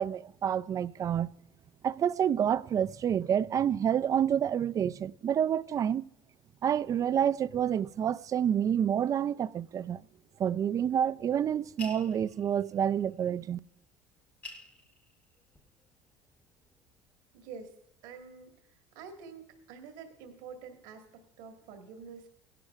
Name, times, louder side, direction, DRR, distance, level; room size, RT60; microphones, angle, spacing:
voice 1, 0.0-1.3 1.8-6.1 6.6-10.0 10.4-13.6, right 9 dB, 35° right, 0.3 m, -28 dB
sound 1, 11.8-12.7 13.8-13.9 14.2-15.8 16.3-17.0, left 3 dB, 15° left, 1.0 m, -47 dB
voice 2, 17.3-17.7 18.0-19.4 19.7-22.3, right 5 dB, 85° right, 1.6 m, -47 dB
16.0 x 11.5 x 2.4 m
supercardioid pair, 95°, 10 cm